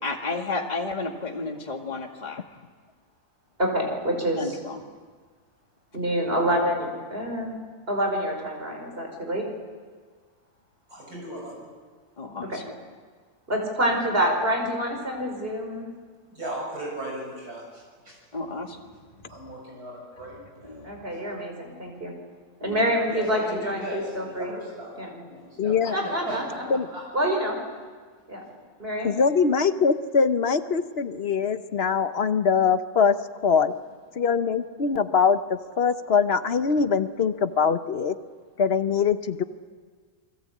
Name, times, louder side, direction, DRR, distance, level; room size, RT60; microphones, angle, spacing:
voice 1, 0.0-2.4 4.4-4.8 12.2-12.6 18.3-18.8 19.2-19.4 20.6-21.0 22.6-22.9, left 3 dB, 30° left, 2 dB, 2.2 m, -32 dB
voice 2, 3.6-4.6 5.9-7.5 7.9-9.4 12.5-12.6 13.5-15.9 20.8-22.1 22.6-24.5 25.0-25.1 25.9-26.6 27.1-27.6 28.3-28.4 28.8-29.1, equal, 40° right, 2 dB, 5.5 m, -27 dB
voice 3, 10.9-11.7 16.3-18.2 19.3-21.2 23.1-26.4 26.7-27.0, right 1 dB, 80° right, -2 dB, 7.3 m, -37 dB
voice 4, 25.6-26.0 26.7-26.9 29.0-33.2 33.4-33.7 34.1-38.2 38.6-39.4, left 6 dB, 45° left, 10 dB, 1.1 m, -22 dB
29.5 x 21.0 x 8.5 m, 1.5 s
omnidirectional pair, 1.6 m